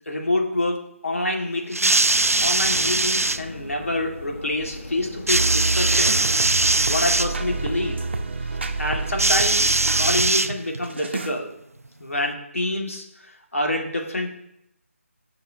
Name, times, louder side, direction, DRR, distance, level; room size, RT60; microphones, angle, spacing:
voice 1, 0.1-2.2 2.4-6.4 6.9-8.0 8.8-11.5 12.0-14.4, left 1 dB, 70° left, 1 dB, 1.9 m, -27 dB
sound 1, 1.7-3.4 5.3-7.3 9.2-10.9 11.8-11.9, right 2 dB, 85° right, 0.4 m, -21 dB
sound 2, 2.1-7.9, left 2 dB, 55° left, 1.1 m, -40 dB
sound 3, 5.3-10.3 10.8-11.3, right 3 dB, 50° right, 0.8 m, -27 dB
15.0 x 5.8 x 2.7 m, 0.79 s
figure-of-eight pair, 155°, 8 cm